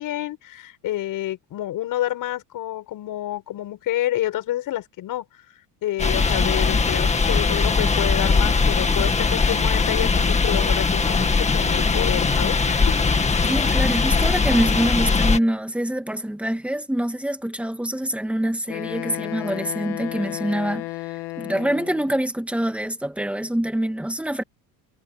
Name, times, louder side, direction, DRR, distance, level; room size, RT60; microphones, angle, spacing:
voice 1, 0.0-5.3 5.8-12.9, left 13 dB, 55° left, 7.3 m, -28 dB
sound 1, 6.0-15.4, left 4 dB, 15° left, 2.0 m, -20 dB
voice 2, 13.5-24.4, right 1 dB, 5° right, 2.2 m, -25 dB
Wind instrument woodwind instrument, 18.7-22.1, left 20 dB, 75° left, 1.9 m, -33 dB
cardioid pair, 140°, 40 cm